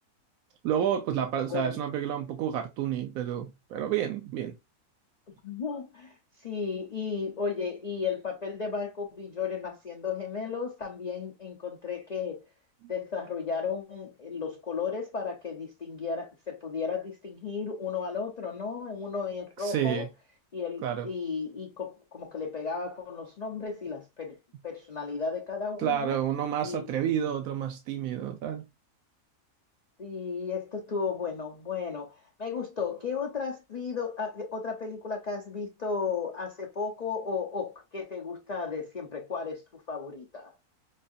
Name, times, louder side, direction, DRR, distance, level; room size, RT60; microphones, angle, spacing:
voice 1, 0.6-4.5 19.6-20.1 20.8-21.1 25.8-28.6, right 9 dB, 75° right, 1.0 m, -30 dB
voice 2, 5.4-12.4 12.9-20.1 20.5-24.4 24.6-26.2 26.6-26.9 30.0-40.5, left 5 dB, 80° left, 0.3 m, -34 dB
5.3 x 2.4 x 2.6 m
omnidirectional pair, 1.6 m